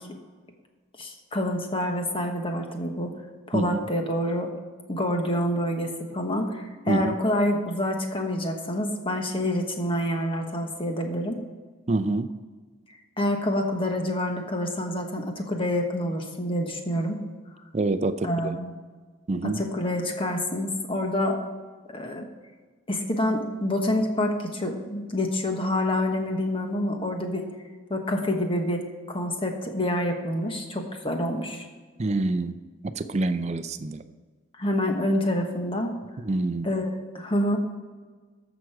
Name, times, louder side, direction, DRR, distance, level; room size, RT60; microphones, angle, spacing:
voice 1, 1.0-3.1 3.5-4.5 4.9-11.4 13.2-17.2 18.2-18.7 19.4-21.4 21.9-22.2 22.9-27.5 27.9-31.7 34.6-35.9 36.6-37.6, left 1 dB, 30° left, 3 dB, 1.2 m, -27 dB
voice 2, 11.9-12.3 17.7-18.6 19.3-19.6 32.0-32.6 32.8-34.0 36.2-36.7, right 2 dB, 35° right, 11 dB, 0.5 m, -26 dB
14.0 x 6.2 x 4.7 m, 1.4 s
head